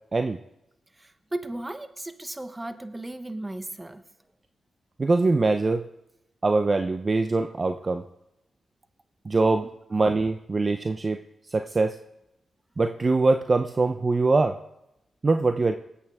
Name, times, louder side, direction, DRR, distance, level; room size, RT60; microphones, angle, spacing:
voice 1, 1.0-4.0, right 1 dB, 20° right, 9 dB, 1.3 m, -35 dB
voice 2, 5.0-5.8 6.4-8.0 9.2-11.2 11.5-12.0 12.8-14.6 15.2-15.8, right 3 dB, 40° right, 7 dB, 0.7 m, -23 dB
20.0 x 8.4 x 3.6 m, 0.85 s
supercardioid pair, 50°, 0 cm